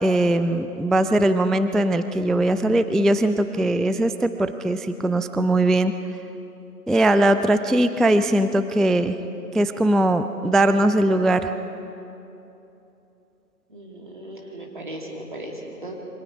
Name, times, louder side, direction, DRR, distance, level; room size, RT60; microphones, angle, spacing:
voice 1, 0.0-5.9 6.9-9.2 9.5-11.5, right 1 dB, ahead, 10 dB, 0.4 m, -20 dB
voice 2, 13.7-15.9, right 1 dB, 30° right, -1 dB, 2.6 m, -37 dB
27.5 x 24.5 x 5.0 m, 3.0 s
figure-of-eight pair, 170°, 49 cm